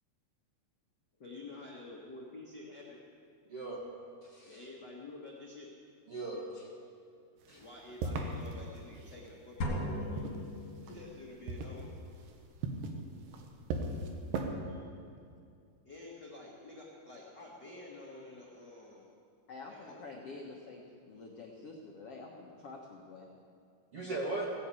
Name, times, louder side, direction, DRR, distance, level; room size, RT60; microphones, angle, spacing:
voice 1, 1.2-3.0 4.5-5.7 7.5-10.4 10.8-12.0 15.8-19.1 19.6-20.2, left 2 dB, 75° left, -4 dB, 0.9 m, -49 dB
voice 2, 3.5-3.8 4.2-4.6 6.1-6.7 7.5-7.6 23.9-24.5, right 2 dB, 60° right, -3 dB, 1.5 m, -38 dB
sound 1, 7.4-9.3 9.9-11.2 11.5-14.5, right 3 dB, 80° right, 3.4 m, -38 dB
sound 2, 9.6-11.3, left 1 dB, 35° left, 2.9 m, -37 dB
voice 3, 19.5-23.3, left 3 dB, 90° left, -1 dB, 1.3 m, -48 dB
17.0 x 9.3 x 8.5 m, 2.3 s
omnidirectional pair, 4.8 m